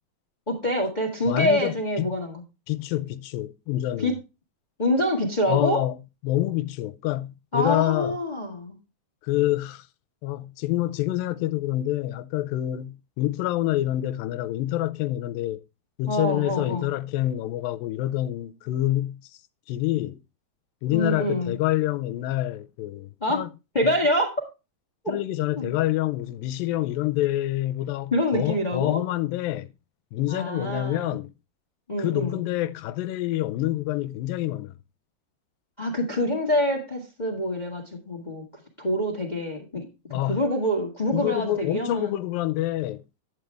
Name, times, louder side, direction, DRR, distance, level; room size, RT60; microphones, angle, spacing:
voice 1, 0.5-2.4 4.0-4.1 4.8-5.8 7.5-8.8 16.1-16.9 20.9-21.6 23.2-23.4 23.7-24.3 25.0-25.2 25.5-25.7 28.1-29.0 30.3-31.2 31.9-32.4 35.8-38.4 38.8-39.8 40.1-42.2, left 1 dB, 45° left, 0.5 m, -26 dB
voice 2, 1.3-2.1 2.7-4.2 5.5-6.0 6.2-8.2 9.2-9.9 10.2-15.6 16.0-19.2 19.7-20.2 20.8-23.5 25.1-29.7 30.1-31.3 32.0-34.7 40.1-40.4 41.1-43.0, left 15 dB, 80° left, 2.3 m, -27 dB
11.0 x 7.8 x 3.3 m
omnidirectional pair, 4.1 m